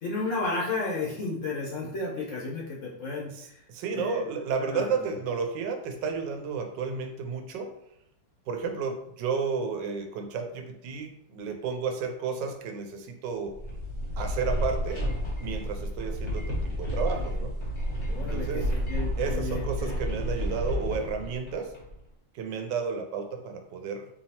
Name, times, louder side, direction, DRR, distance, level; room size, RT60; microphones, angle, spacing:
voice 1, 0.0-3.6 3.9-4.3 4.6-5.1 18.0-19.9, left 3 dB, 55° left, -4 dB, 1.0 m, -33 dB
voice 2, 3.3-7.7 8.5-13.5 14.2-15.1 15.4-17.6 18.2-18.7 19.2-21.7 22.3-24.1, right 5 dB, 80° right, 5 dB, 1.2 m, -32 dB
sound 1, 13.4-22.0, equal, 35° left, 0.4 m, -31 dB
4.4 x 2.8 x 2.8 m, 0.75 s
omnidirectional pair, 2.0 m